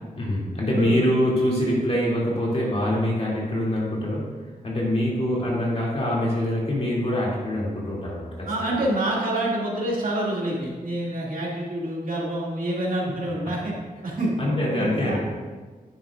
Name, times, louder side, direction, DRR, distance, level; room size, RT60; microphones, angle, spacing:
voice 1, 0.2-4.3 4.6-8.7 14.4-15.2, left 1 dB, 45° left, -5 dB, 2.6 m, -24 dB
voice 2, 0.7-1.0 8.5-13.7 14.0-14.3 14.8-15.2, right 1 dB, 70° right, -5 dB, 2.3 m, -27 dB
9.7 x 9.5 x 2.5 m, 1.4 s
wide cardioid pair, 130°, 15 cm